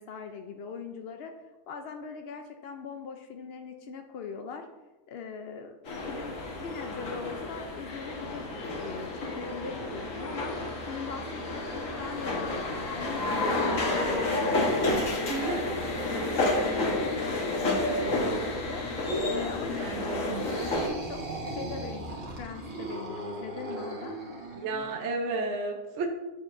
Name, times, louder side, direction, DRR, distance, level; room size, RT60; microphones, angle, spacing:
voice 1, 0.0-1.3 1.7-4.7 5.1-8.5 8.8-10.6 10.9-12.6 12.9-14.7 15.0-15.8 16.3-21.2 21.5-24.2, left 5 dB, 80° left, 5 dB, 0.5 m, -41 dB
sound 1, 5.9-20.9, left 2 dB, 60° left, 1.6 m, -30 dB
voice 2, 15.3-15.8 19.8-20.5 24.6-26.1, right 3 dB, 60° right, 2 dB, 0.9 m, -32 dB
sound 2, 20.2-25.0, right 2 dB, 25° right, 1.3 m, -38 dB
8.1 x 7.2 x 2.5 m, 1.1 s
omnidirectional pair, 1.6 m